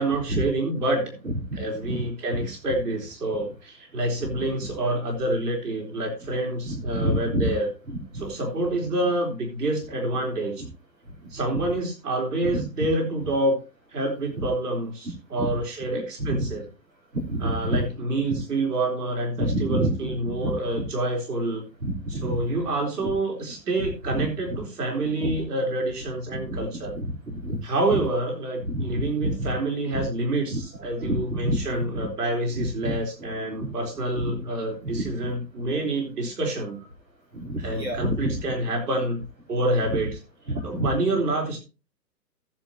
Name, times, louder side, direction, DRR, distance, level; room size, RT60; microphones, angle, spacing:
voice 1, 0.0-1.1 1.5-7.7 8.1-10.6 11.3-13.6 13.9-16.6 17.4-21.6 22.2-27.0 27.6-36.8 37.6-40.1 40.6-41.6, right 1 dB, 65° right, 0 dB, 4.1 m, -27 dB
voice 2, 1.2-1.6 1.9-2.0 4.3-4.5 6.6-7.5 8.1-8.2 12.4-12.6 15.4-15.5 15.9-16.0 16.3-16.5 17.1-17.8 18.3-18.4 19.4-20.1 20.4-20.5 21.8-22.4 23.0-23.1 23.8-24.2 25.2-25.4 26.3-26.6 26.9-27.6 28.6-29.5 30.5-30.6 31.0-31.6 32.6-33.0 33.6-33.7 34.1-34.4 34.8-35.1 37.3-38.4 40.5-40.9, right 1 dB, 85° right, -3 dB, 4.4 m, -28 dB
14.5 x 10.5 x 3.0 m, 0.31 s
figure-of-eight pair, 130°, 50 cm